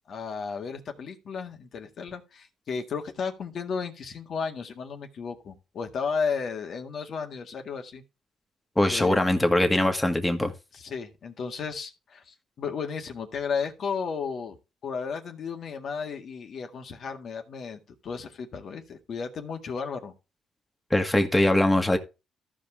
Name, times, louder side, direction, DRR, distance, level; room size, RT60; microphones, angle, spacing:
voice 1, 0.1-8.0 8.9-9.2 10.7-14.6 14.8-20.1, left 5 dB, 60° left, 1.9 m, -34 dB
voice 2, 8.8-10.5 20.9-22.0, left 1 dB, 10° left, 1.7 m, -22 dB
14.5 x 5.1 x 3.6 m
cardioid pair, 90°, 0 cm